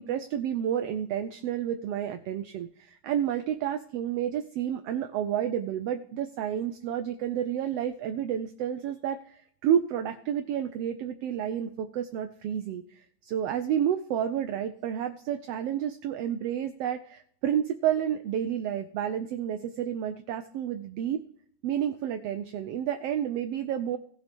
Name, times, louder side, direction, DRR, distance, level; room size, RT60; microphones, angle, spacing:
voice 1, 0.0-21.2 21.6-24.0, right 9 dB, 75° right, 8 dB, 1.4 m, -30 dB
18.0 x 6.3 x 3.5 m, 0.63 s
omnidirectional pair, 3.4 m